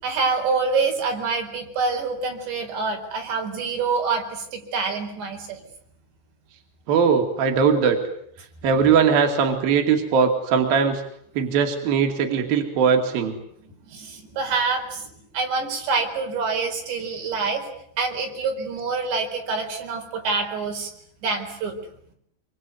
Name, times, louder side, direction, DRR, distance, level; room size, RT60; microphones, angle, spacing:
voice 1, 0.0-5.6 13.9-15.1 15.3-17.6 18.0-20.9 21.2-21.7, right 4 dB, 80° right, 3 dB, 6.8 m, -26 dB
voice 2, 6.9-8.0 8.6-11.0 11.4-13.4, right 6 dB, 60° right, 5 dB, 4.1 m, -20 dB
26.0 x 24.0 x 9.3 m, 0.71 s
omnidirectional pair, 5.0 m